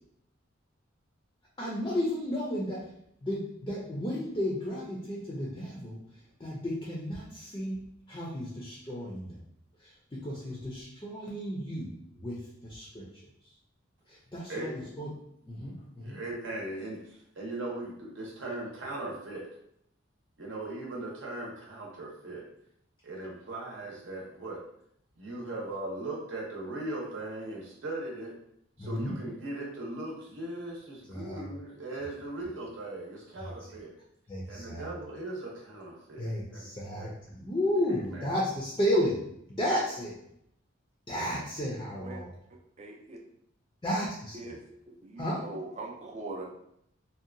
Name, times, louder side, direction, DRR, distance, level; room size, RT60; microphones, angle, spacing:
voice 1, 1.6-2.9 3.2-6.0 6.4-7.8 8.1-9.4 9.8-13.1 14.1-15.1 15.5-16.2 28.8-29.1 31.1-31.4 34.3-34.9 36.2-37.1 37.4-40.2 41.1-42.3 43.8-44.5 45.2-45.5, equal, 20° left, -5 dB, 0.4 m, -33 dB
voice 2, 16.0-19.4 20.4-22.4 23.0-24.6 25.2-28.3 28.8-33.9 34.5-37.1 38.1-38.3, right 2 dB, 70° right, -2 dB, 0.7 m, -39 dB
voice 3, 42.8-43.2 44.3-44.6 44.9-46.5, right 2 dB, 35° right, 1 dB, 0.4 m, -41 dB
2.7 x 2.2 x 2.5 m, 0.72 s
head